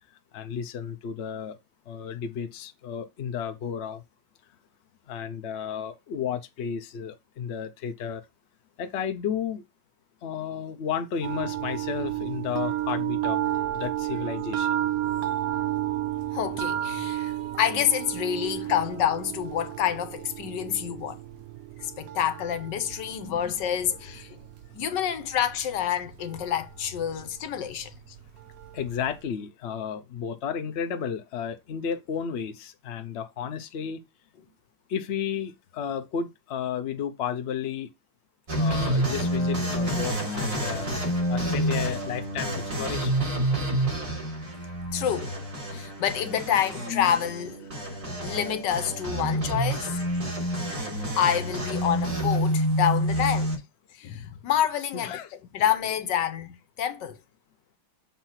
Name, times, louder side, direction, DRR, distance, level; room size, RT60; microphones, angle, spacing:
voice 1, 0.3-1.6 1.9-4.0 5.1-8.2 8.8-9.6 10.2-13.4 13.7-14.7 18.6-18.9 23.3-23.5 28.7-34.0 34.9-37.9 38.6-40.9 41.3-43.1 46.7-46.8 47.1-47.2 47.8-48.0 54.9-55.3 56.2-56.3, left 8 dB, 85° left, 0.5 m, -33 dB
sound 1, 11.2-29.2, right 12 dB, 65° right, 0.9 m, -32 dB
voice 2, 16.3-21.2 21.8-24.4 24.7-27.9 44.9-45.4 45.7-47.6 48.2-50.0 51.2-53.5 53.9-55.2 55.5-57.2, left 9 dB, 65° left, 1.3 m, -28 dB
sound 2, 38.5-53.6, right 1 dB, 45° right, 3.9 m, -28 dB
7.3 x 2.8 x 5.6 m
omnidirectional pair, 2.3 m